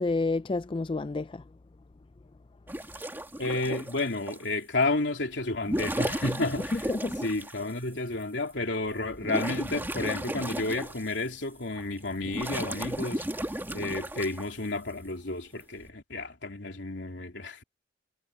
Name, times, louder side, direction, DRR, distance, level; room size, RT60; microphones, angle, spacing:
voice 1, 0.0-1.4 6.7-7.2 13.8-13.9, left 3 dB, 30° left, 0.4 m, -29 dB
sound 1, 2.7-4.4 5.5-7.6 8.2-8.3 8.8-11.3 11.8-14.4 15.6-15.9, right 1 dB, 10° right, 2.3 m, -34 dB
voice 2, 3.4-6.9 7.2-13.3 13.7-17.6, left 2 dB, 75° left, 3.2 m, -31 dB
head